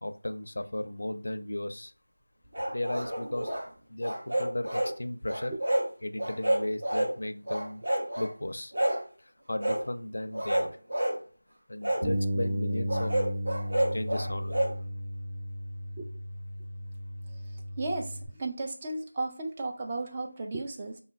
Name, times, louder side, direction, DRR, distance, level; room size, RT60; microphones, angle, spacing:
voice 1, 0.0-1.9 2.7-3.5 3.9-5.5 6.0-7.8 8.2-8.7 9.2-10.7 11.7-13.1 13.9-14.7, left 1 dB, 60° left, 9 dB, 0.4 m, -35 dB
sound 1, 2.5-3.6 4.0-4.9 5.3-5.9 6.2-7.1 7.5-8.3 8.7-9.0 9.6-9.8 10.3-11.2 11.8-12.0 12.9-14.7, right 1 dB, 55° right, 1.3 m, -29 dB
Bass guitar, 12.0-18.3, equal, 80° right, 1.4 m, -34 dB
voice 2, 17.8-21.0, right 2 dB, 15° right, 1 dB, 0.3 m, -34 dB
2.9 x 2.2 x 3.3 m, 0.37 s
figure-of-eight pair, 175°, 0 cm